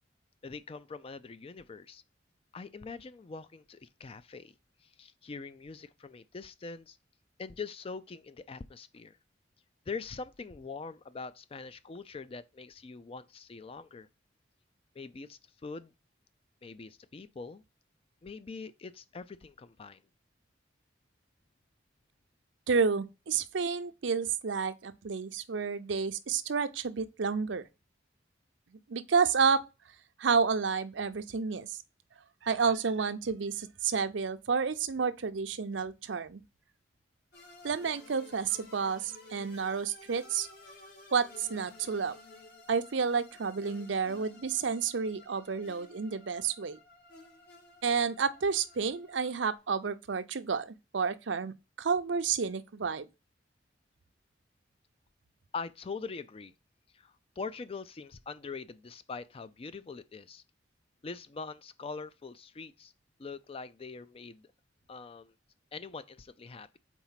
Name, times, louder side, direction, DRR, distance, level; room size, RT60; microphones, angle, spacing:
voice 1, 0.4-2.0 2.5-4.5 4.8-7.0 7.4-9.2 9.9-14.1 15.0-15.9 16.6-17.6 18.2-20.0 55.5-56.5 56.9-60.4 61.0-62.9 63.2-64.5 64.9-65.3 65.7-66.8, left 4 dB, 30° left, 0.4 m, -43 dB
voice 2, 22.7-27.6 28.9-29.6 30.2-31.7 32.4-36.4 37.6-40.5 41.1-42.1 42.7-46.8 47.8-53.1, right 5 dB, 80° right, 0.6 m, -30 dB
sound 1, 37.3-49.6, left 2 dB, 60° left, 2.0 m, -54 dB
4.5 x 4.0 x 5.7 m
head